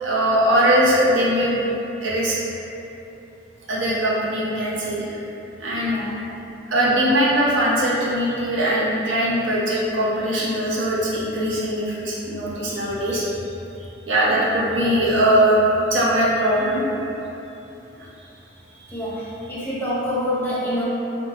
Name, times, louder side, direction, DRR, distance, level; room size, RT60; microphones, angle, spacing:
voice 1, 0.0-1.7 2.0-2.4 3.7-5.2 5.6-6.0 6.7-13.2 13.8-15.6 15.9-16.8, right 1 dB, 75° right, -6 dB, 0.7 m, -21 dB
voice 2, 5.7-6.1 18.9-20.8, left 1 dB, 10° left, -9 dB, 0.7 m, -26 dB
4.3 x 2.2 x 2.9 m, 3.0 s
head